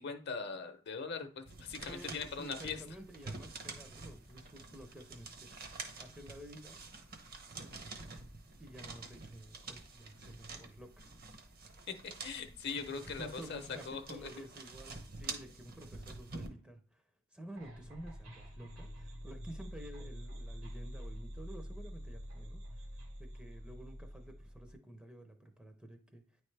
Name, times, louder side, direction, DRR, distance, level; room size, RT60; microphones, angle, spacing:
voice 1, 0.0-2.8 11.9-14.3, left 5 dB, 55° left, 8 dB, 0.7 m, -41 dB
sound 1, 1.5-16.5, right 3 dB, 45° right, 0.9 m, -48 dB
voice 2, 1.9-5.5 6.0-6.8 8.6-11.1 12.9-17.0 17.3-22.8 23.2-26.2, right 1 dB, 5° right, 5 dB, 0.6 m, -51 dB
sound 2, 17.6-24.7, equal, 75° right, 1.8 m, -46 dB
9.5 x 3.2 x 3.3 m, 0.43 s
head